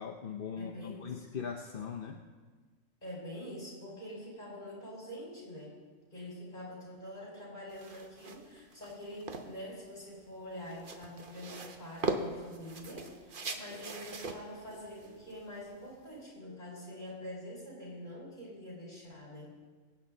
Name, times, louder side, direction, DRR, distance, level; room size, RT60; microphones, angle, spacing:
voice 1, 0.0-2.2, left 6 dB, 50° left, 3 dB, 0.8 m, -40 dB
voice 2, 0.6-1.3 3.0-5.8 6.1-19.6, left 1 dB, 30° left, -5 dB, 5.0 m, -45 dB
sound 1, 7.7-16.2, right 3 dB, 40° right, 1.1 m, -41 dB
22.5 x 8.8 x 3.9 m, 1.4 s
omnidirectional pair, 1.4 m